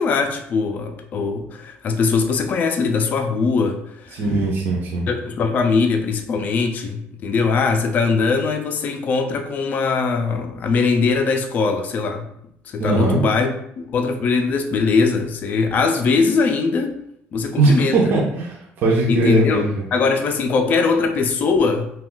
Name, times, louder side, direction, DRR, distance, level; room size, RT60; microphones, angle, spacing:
voice 1, 0.0-4.2 5.1-12.3 12.7-16.9 17.3-18.1 19.1-21.9, left 4 dB, 35° left, 5 dB, 0.3 m, -21 dB
voice 2, 4.1-5.1 12.8-13.2 17.6-19.8, right 2 dB, 45° right, -2 dB, 0.5 m, -19 dB
2.3 x 2.3 x 3.7 m, 0.73 s
cardioid pair, 165°, 5 cm